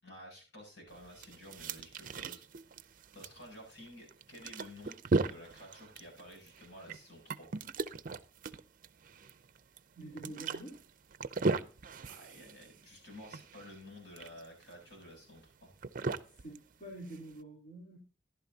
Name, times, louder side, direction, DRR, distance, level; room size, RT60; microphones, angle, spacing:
voice 1, 0.0-5.0 5.2-7.5 12.1-15.7, left 1 dB, 70° left, 1 dB, 7.6 m, -52 dB
sound 1, 0.9-17.4, right 3 dB, 50° right, 0.6 m, -38 dB
voice 2, 9.9-10.8 16.3-18.0, right 1 dB, 50° left, -6 dB, 3.6 m, -47 dB
14.0 x 11.5 x 2.8 m, 0.35 s
head